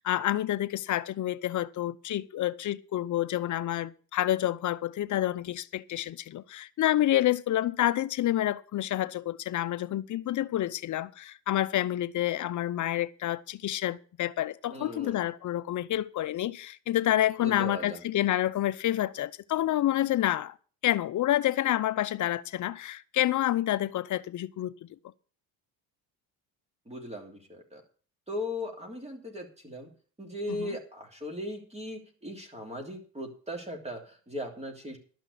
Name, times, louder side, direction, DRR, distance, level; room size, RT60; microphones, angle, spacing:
voice 1, 0.0-20.5 20.8-24.7 30.6-30.7, left 13 dB, 45° left, 0.7 m, -28 dB
voice 2, 14.7-15.3 17.4-18.0 26.9-27.8 28.3-29.9 30.2-35.0, left 1 dB, 15° right, 3.2 m, -38 dB
12.0 x 5.9 x 8.4 m
supercardioid pair, 90°, 42 cm